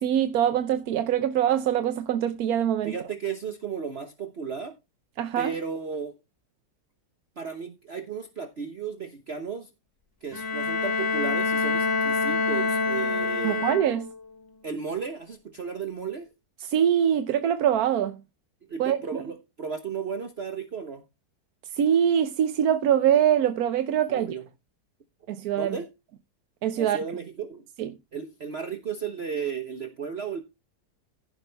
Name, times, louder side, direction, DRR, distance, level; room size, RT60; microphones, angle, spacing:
voice 1, 0.0-2.9 5.2-5.5 13.4-14.1 16.6-18.2 18.8-19.2 21.7-24.3 25.3-25.8 26.6-27.0 27.8-27.9, right 9 dB, 70° right, 1.1 m, -23 dB
voice 2, 2.8-4.7 5.4-6.2 7.4-9.7 10.2-13.7 14.6-16.3 18.7-21.0 23.9-24.5 25.6-25.9 26.8-27.7 28.1-30.4, right 6 dB, 45° right, 1.1 m, -34 dB
Bowed string instrument, 10.3-14.3, left 4 dB, 15° left, 1.7 m, -26 dB
15.5 x 6.0 x 3.4 m
omnidirectional pair, 1.8 m